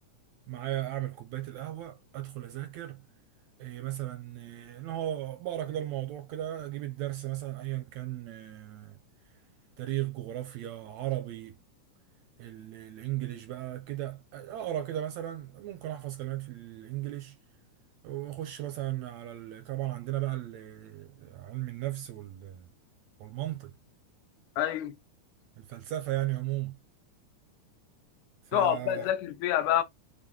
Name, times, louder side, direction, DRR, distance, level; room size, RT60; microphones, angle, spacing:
voice 1, 0.5-3.0 3.6-9.0 9.8-11.6 12.4-17.4 18.0-22.7 23.2-23.7 25.6-26.8 28.5-29.1, right 14 dB, 80° right, 1.6 m, -36 dB
voice 2, 24.6-24.9 28.5-29.8, left 11 dB, 85° left, 2.2 m, -27 dB
6.4 x 2.2 x 2.9 m
omnidirectional pair, 3.5 m